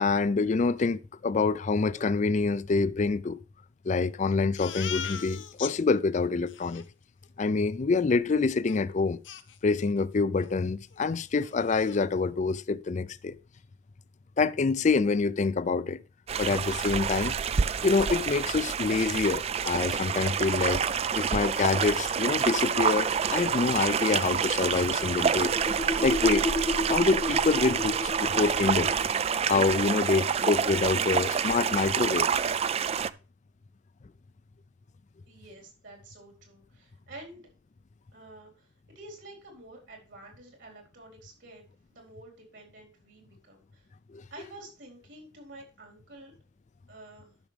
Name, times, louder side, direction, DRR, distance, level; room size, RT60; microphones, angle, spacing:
voice 1, 0.0-3.4 3.8-6.8 7.4-9.2 9.6-13.4 14.4-16.0 16.4-17.3 17.8-20.8 21.1-25.5 26.0-26.5 26.9-28.9 29.5-32.3 44.1-44.2, left 4 dB, 40° left, 0.4 m, -26 dB
Crying sobbing, 4.6-5.7 6.1-6.2 6.5-6.9 8.7-8.8 9.2-10.0 10.4-10.6 10.9-11.0 11.3-12.0, left 9 dB, 75° left, 0.7 m, -39 dB
sound 1, 16.3-33.1, right 7 dB, 30° right, 0.3 m, -28 dB
sound 2, 24.6-29.1, left 1 dB, 10° left, 0.8 m, -33 dB
voice 2, 35.3-37.5 38.1-38.7 38.9-43.9 44.3-46.3 46.9-47.3, right 2 dB, 70° right, 4.0 m, -49 dB
12.5 x 6.1 x 3.3 m
head